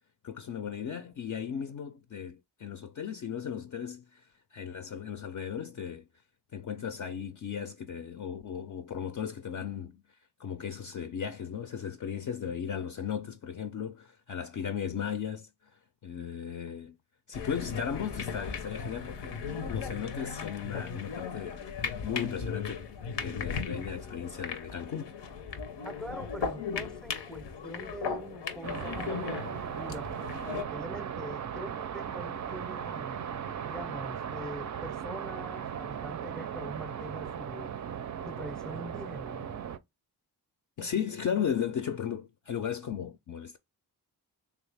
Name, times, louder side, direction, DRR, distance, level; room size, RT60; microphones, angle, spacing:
voice 1, 0.2-6.1 6.5-10.0 10.4-15.7 16.0-17.0 17.3-21.6 22.0-22.9 23.2-25.1 40.8-43.6, left 8 dB, 50° left, 0.5 m, -36 dB
sound 1, 17.3-30.6, left 6 dB, 85° left, 0.7 m, -37 dB
voice 2, 25.8-30.1 30.5-33.2 33.6-37.8 38.3-39.6, equal, ahead, 0.6 m, -43 dB
sound 2, 28.6-39.8, right 8 dB, 45° right, 0.4 m, -37 dB
3.3 x 2.4 x 3.3 m
cardioid pair, 65°, 40 cm